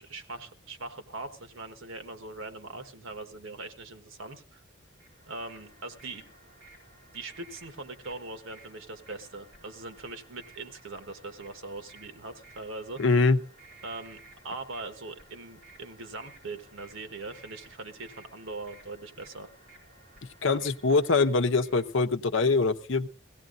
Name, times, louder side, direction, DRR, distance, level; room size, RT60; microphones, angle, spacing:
voice 1, 0.0-4.6 5.3-6.3 7.1-13.0 13.8-19.5 20.5-20.7, right 3 dB, 85° right, 9 dB, 1.4 m, -41 dB
sound 1, 4.8-21.9, right 2 dB, 50° right, 5.2 m, -56 dB
voice 2, 13.0-13.4 20.4-23.1, left 3 dB, 75° left, 10 dB, 0.8 m, -23 dB
22.0 x 16.5 x 2.5 m, 0.33 s
head